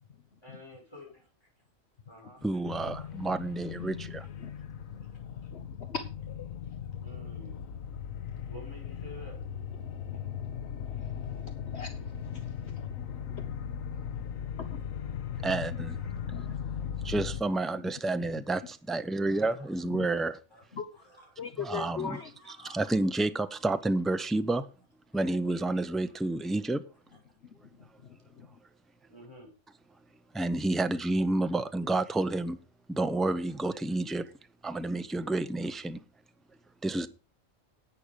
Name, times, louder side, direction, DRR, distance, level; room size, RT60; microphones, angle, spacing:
voice 1, 0.4-1.5 2.1-2.5 4.0-4.1 5.4-5.5 7.0-7.7 8.5-9.4 16.9-17.1 19.3-19.7 20.0-20.1 20.5-21.4 22.1-23.0 25.1-25.2 26.0-26.5 27.1-27.2 29.1-29.5 34.2-34.3, equal, 20° left, 6.0 m, -51 dB
voice 2, 2.4-4.3 15.4-16.0 17.0-20.4 21.6-22.2 22.7-24.7 25.1-26.8 30.3-32.6 32.9-34.3 34.6-36.0 36.8-37.1, right 2 dB, ahead, 0.4 m, -30 dB
sound 1, 2.6-17.4, left 8 dB, 80° left, 1.3 m, -38 dB
voice 3, 5.2-6.6 9.8-13.5 14.6-14.8 15.7-15.8 16.2-16.9 17.7-17.9 18.3-18.4 19.9-20.1 20.7-20.9 21.4-22.3 27.7-28.6, left 6 dB, 55° left, 1.1 m, -42 dB
11.0 x 8.9 x 4.9 m
omnidirectional pair, 1.4 m